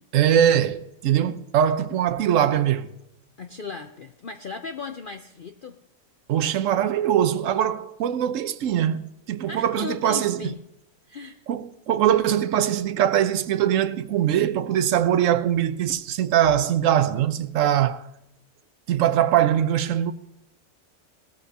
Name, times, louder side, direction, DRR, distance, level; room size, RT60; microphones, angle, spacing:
voice 1, 0.1-2.9 6.3-10.5 11.5-18.0 18.9-20.1, right 10 dB, 65° right, 1.0 m, -22 dB
voice 2, 3.4-5.8 9.5-10.6 11.1-11.4, left 5 dB, 55° left, 0.6 m, -36 dB
19.0 x 13.5 x 2.9 m
omnidirectional pair, 1.5 m